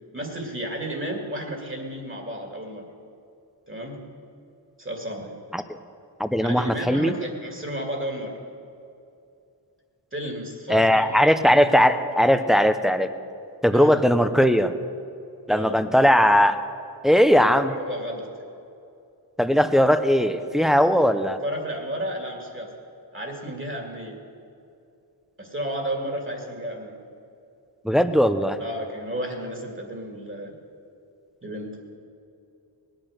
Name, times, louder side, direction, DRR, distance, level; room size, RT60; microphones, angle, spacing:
voice 1, 0.1-2.8 3.7-4.0 4.8-5.3 6.4-8.4 10.1-11.2 13.7-13.9 15.5-15.8 17.7-18.3 21.4-22.7 23.1-24.2 25.4-27.0 28.6-30.5 31.4-31.8, right 1 dB, 25° right, 2 dB, 2.3 m, -32 dB
voice 2, 6.2-7.2 10.7-13.1 13.6-14.7 15.5-16.6 17.0-17.7 19.4-21.4 27.8-28.6, equal, ahead, 9 dB, 0.6 m, -19 dB
20.0 x 9.0 x 6.5 m, 2.6 s
wide cardioid pair, 105°, 44 cm